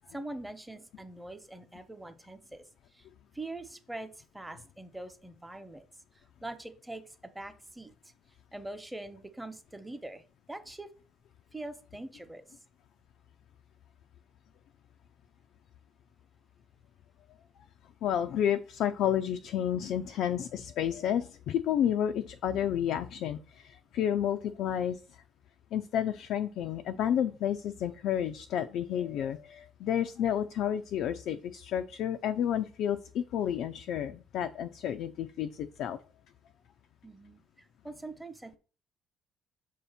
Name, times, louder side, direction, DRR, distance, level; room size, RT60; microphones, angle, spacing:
voice 1, 0.0-2.6 2.9-3.1 3.3-4.1 4.3-5.8 6.4-7.0 7.3-7.9 8.5-10.9 11.5-12.4 37.0-38.6, right 2 dB, 10° right, 9 dB, 1.0 m, -43 dB
voice 2, 18.0-25.0 25.7-36.0, left 10 dB, 65° left, 8 dB, 0.4 m, -31 dB
6.5 x 2.8 x 5.7 m, 0.38 s
hypercardioid pair, 55°, 0 cm